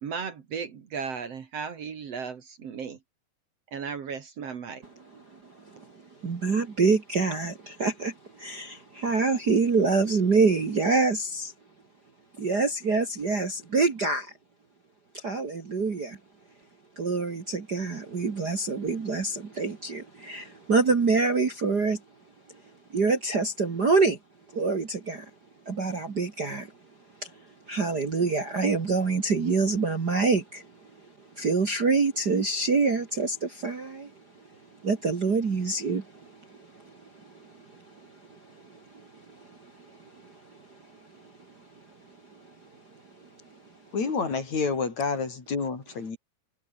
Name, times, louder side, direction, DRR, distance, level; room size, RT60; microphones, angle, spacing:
voice 1, 0.0-3.0 3.7-4.8, right 6 dB, 50° right, 2.7 m, -35 dB
voice 2, 6.2-11.5 12.4-14.3 15.1-16.2 17.0-22.0 22.9-24.2 24.5-25.3 25.7-26.7 27.2-27.3 27.7-30.7 31.4-34.1 34.8-36.3 36.6-37.8 38.3-38.4 38.7-38.8 39.1-40.0, right 4 dB, 35° right, 2.1 m, -26 dB
voice 3, 43.9-46.2, left 4 dB, 55° left, 5.7 m, -29 dB
omnidirectional pair, 3.8 m